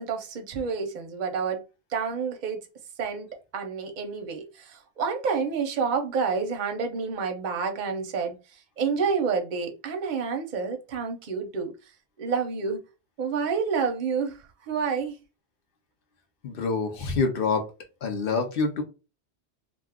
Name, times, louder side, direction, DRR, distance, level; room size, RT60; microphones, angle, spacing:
voice 1, 0.0-1.6 1.9-2.6 3.0-3.3 3.5-11.7 12.2-12.8 13.2-15.2, right 5 dB, 50° right, 0.7 m, -29 dB
voice 2, 16.4-17.7 18.0-18.8, left 4 dB, 60° left, 0.8 m, -26 dB
2.4 x 2.3 x 3.4 m
omnidirectional pair, 1.1 m